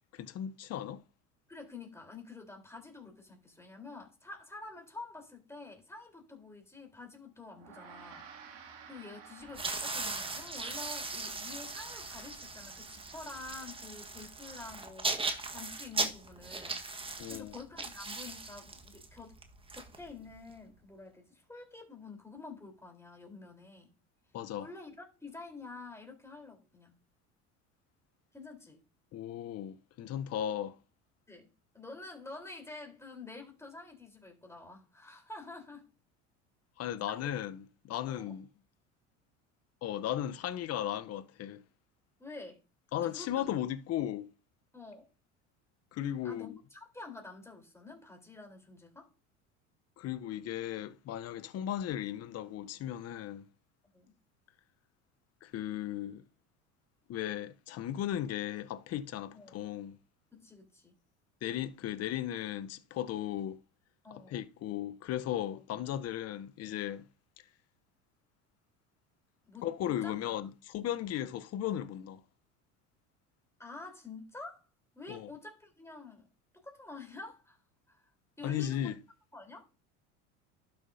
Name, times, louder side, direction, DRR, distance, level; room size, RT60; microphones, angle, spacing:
voice 1, 0.1-1.0 17.2-17.5 24.3-24.7 29.1-30.8 36.8-38.5 39.8-41.6 42.9-44.3 45.9-46.6 50.0-53.5 55.4-56.2 57.1-60.0 61.4-63.6 64.1-67.0 69.6-72.2 75.1-75.3 78.4-79.0, left 11 dB, 45° left, 0.8 m, -36 dB
voice 2, 1.5-15.1 15.5-19.4 19.7-23.9 24.6-27.0 28.3-28.8 31.3-35.9 37.1-37.3 38.1-38.3 42.2-42.6 43.0-43.5 44.7-45.1 46.2-49.1 53.9-54.2 59.3-59.6 60.3-60.9 64.0-64.4 65.5-65.6 69.5-70.2 73.6-74.6 74.9-76.3 76.5-77.6 77.9-78.0 78.4-79.0 79.3-79.7, left 3 dB, 10° left, 3.8 m, -48 dB
Gong, 7.5-17.2, right 6 dB, 65° right, 2.4 m, -56 dB
sound 1, 9.5-20.5, right 3 dB, 15° right, 1.4 m, -38 dB
12.0 x 6.7 x 2.7 m
hypercardioid pair, 85°, 35 cm